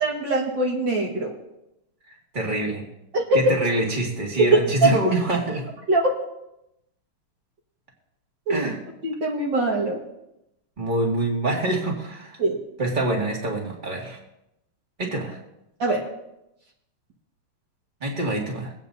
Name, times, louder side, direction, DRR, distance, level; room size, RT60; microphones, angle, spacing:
voice 1, 0.0-1.3 3.1-3.2 4.5-4.9 5.9-6.1 8.5-8.6 9.0-10.0 12.4-12.6 15.8-16.0, right 3 dB, 55° right, -2 dB, 2.2 m, -22 dB
voice 2, 2.1-2.9 3.3-5.7 8.5-8.8 10.8-12.4 12.8-14.2 15.0-15.4 18.0-18.7, right 1 dB, 20° right, -1 dB, 2.2 m, -25 dB
25.0 x 9.0 x 2.7 m, 0.87 s
omnidirectional pair, 2.4 m